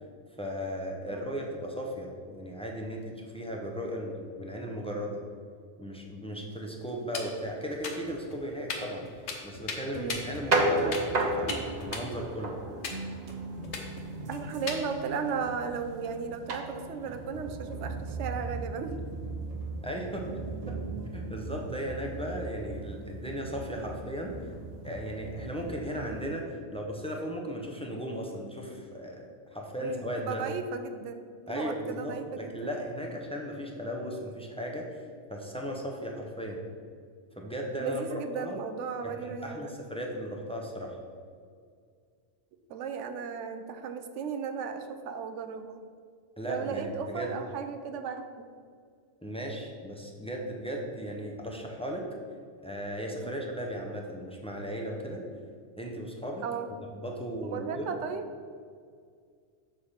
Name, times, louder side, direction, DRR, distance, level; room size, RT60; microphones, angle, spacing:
voice 1, 0.4-5.2 5.8-9.1 9.4-12.6 18.9-19.0 19.8-20.3 20.7-20.8 21.0-24.4 24.8-30.4 31.5-35.0 35.3-36.6 37.4-38.0 38.3-38.6 39.0-41.0 46.4-47.3 49.2-52.1 52.6-55.2 55.8-56.4 56.9-57.9, equal, 5° left, 0 dB, 0.4 m, -36 dB
sound 1, 6.5-7.5 7.7-8.4 8.7-8.8 9.1-11.5 11.8-12.5 12.8-12.9 13.3-13.4 13.6-14.8 15.1-15.3, left 5 dB, 75° left, 1.1 m, -37 dB
sound 2, 10.1-26.3, right 2 dB, 45° right, 0.7 m, -35 dB
voice 2, 14.3-18.9 29.8-32.7 37.8-39.7 42.7-45.8 46.4-48.5 53.2-53.4 56.4-56.7 57.5-58.3, right 6 dB, 85° right, 8 dB, 0.9 m, -36 dB
6.4 x 3.3 x 5.6 m, 2.1 s
omnidirectional pair, 1.2 m